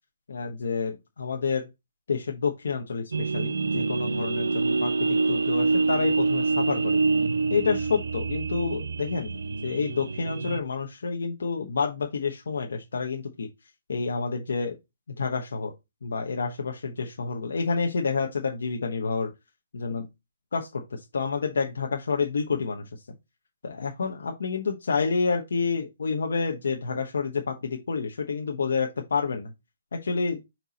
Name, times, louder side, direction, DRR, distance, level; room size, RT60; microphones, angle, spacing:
voice 1, 0.3-1.7 2.1-7.0 7.5-9.3 9.6-13.5 13.9-14.8 15.2-15.7 16.0-19.3 19.7-20.1 20.5-22.9 23.6-29.5 29.9-30.4, left 5 dB, 70° left, 1.1 m, -29 dB
sound 1, 3.1-10.6, right 4 dB, 90° right, 0.4 m, -26 dB
5.4 x 4.6 x 4.1 m
hypercardioid pair, 165°, 0 cm